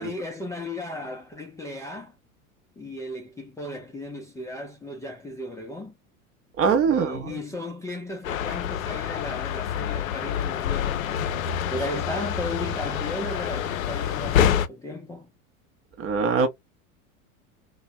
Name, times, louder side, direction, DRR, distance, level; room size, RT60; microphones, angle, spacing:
voice 1, 0.0-2.1 2.8-5.9 6.9-11.3 11.7-15.3, left 1 dB, 5° left, 0.5 m, -35 dB
voice 2, 6.6-7.3 16.0-16.5, right 5 dB, 30° right, 0.7 m, -22 dB
sound 1, 8.2-14.7, left 9 dB, 65° left, 0.5 m, -27 dB
2.5 x 2.1 x 3.0 m
figure-of-eight pair, 80°, 43 cm